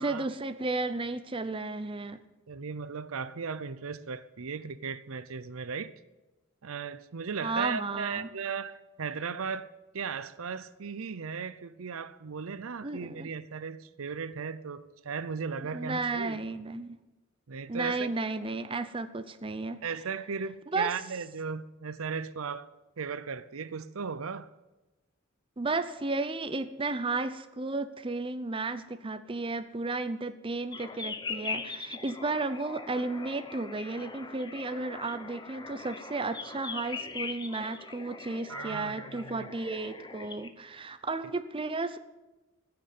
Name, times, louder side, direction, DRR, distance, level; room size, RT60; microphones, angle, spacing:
voice 1, 0.0-2.2 7.4-8.3 12.8-13.3 15.7-17.0 17.7-19.8 20.7-20.9 25.6-42.0, right 3 dB, 25° right, 0.6 m, -33 dB
voice 2, 2.5-5.9 6.6-16.4 17.5-18.1 19.8-22.7 23.0-24.5 38.5-39.5, right 5 dB, 80° right, 0.6 m, -37 dB
sound 1, 30.7-40.5, left 4 dB, 20° left, 0.8 m, -41 dB
15.0 x 6.9 x 9.4 m
head